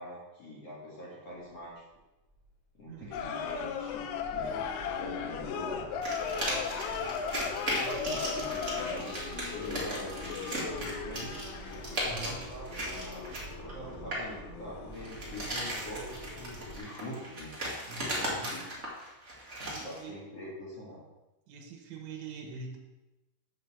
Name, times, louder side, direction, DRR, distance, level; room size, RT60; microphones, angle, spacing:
voice 1, 0.0-1.7 2.7-6.8 7.8-11.5 12.2-17.5 18.0-18.6 19.8-21.0, left 1 dB, 50° left, -8 dB, 2.0 m, -44 dB
sound 1, 1.9-2.0 2.3-2.5 2.9-16.8, right 1 dB, 25° left, 1.9 m, -46 dB
sound 2, 3.1-16.5 16.8-16.9, left 6 dB, 85° left, 3.2 m, -37 dB
sound 3, 6.0-14.3 14.9-20.0, right 1 dB, 55° right, 0.7 m, -37 dB
voice 2, 12.0-12.4 17.9-18.5 19.7-20.2 21.5-22.8, right 4 dB, 75° right, 3 dB, 3.4 m, -44 dB
8.2 x 4.4 x 7.2 m, 1.0 s
omnidirectional pair, 5.4 m